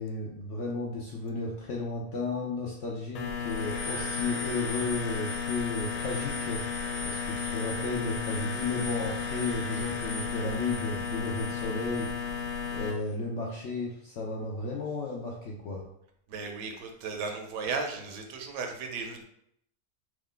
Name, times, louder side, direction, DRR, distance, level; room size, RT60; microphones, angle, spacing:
voice 1, 0.0-12.1 12.7-15.8, left 3 dB, 70° left, -2 dB, 0.7 m, -34 dB
sound 1, 3.2-12.9, left 5 dB, 90° left, 1.2 m, -33 dB
voice 2, 16.3-19.2, right 4 dB, 90° right, 4 dB, 1.2 m, -35 dB
3.1 x 2.3 x 3.6 m, 0.72 s
omnidirectional pair, 1.7 m